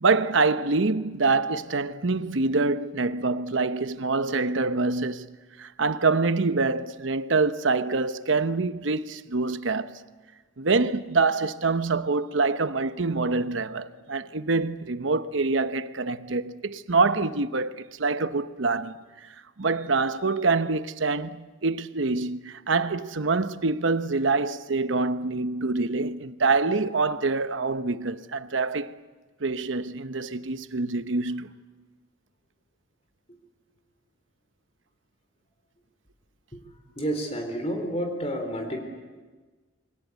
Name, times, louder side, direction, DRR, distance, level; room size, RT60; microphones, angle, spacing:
voice 1, 0.0-5.3 5.6-10.0 10.6-19.0 19.6-28.9 29.4-31.6, right 3 dB, 70° right, 0.9 m, -25 dB
voice 2, 37.0-38.8, right 1 dB, 30° left, 3.9 m, -30 dB
28.0 x 23.5 x 8.2 m
head